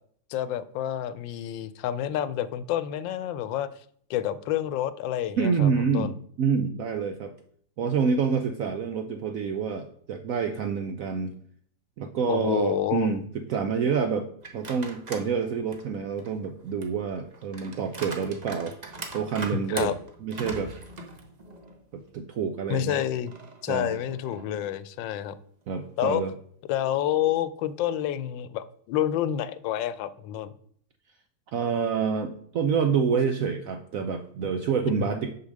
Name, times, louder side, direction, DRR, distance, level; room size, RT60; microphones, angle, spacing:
voice 1, 0.3-3.7 4.1-6.1 12.3-13.2 19.5-20.0 22.7-23.3 23.6-25.3 26.0-26.2 26.7-30.5 35.0-35.1, left 11 dB, 85° left, 15 dB, 1.3 m, -28 dB
voice 2, 5.4-6.1 6.4-7.3 7.8-11.3 12.0-14.3 14.5-19.9 20.2-20.7 21.9-23.0 23.7-24.0 25.7-26.3 31.5-35.3, right 6 dB, 75° right, 7 dB, 0.8 m, -27 dB
sound 1, 14.4-15.3 15.7-21.8 22.2-22.3 23.3-24.7, right 3 dB, 35° right, 0.7 m, -41 dB
6.6 x 4.9 x 6.4 m, 0.62 s
omnidirectional pair, 2.0 m